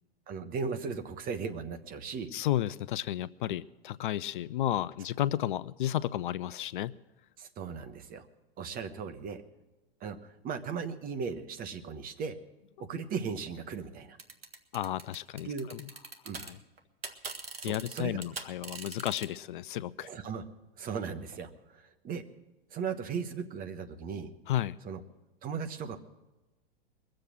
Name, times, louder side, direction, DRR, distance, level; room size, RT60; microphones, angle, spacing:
voice 1, 0.3-2.3 7.4-8.3 8.6-9.4 10.0-12.4 12.8-14.2 15.4-15.7 16.2-16.4 17.6-18.2 20.0-20.4 20.8-22.2 22.7-24.3 24.8-25.0 25.4-26.0, right 6 dB, 30° right, 8 dB, 1.3 m, -37 dB
voice 2, 2.3-6.9 14.7-15.8 16.4-16.6 17.6-20.1 24.5-24.8, left 12 dB, 55° left, 19 dB, 0.4 m, -32 dB
sound 1, 14.2-16.5 16.8-19.3, right 4 dB, 80° right, 1.4 m, -41 dB
21.5 x 7.6 x 7.4 m, 1.1 s
figure-of-eight pair, 95°, 30 cm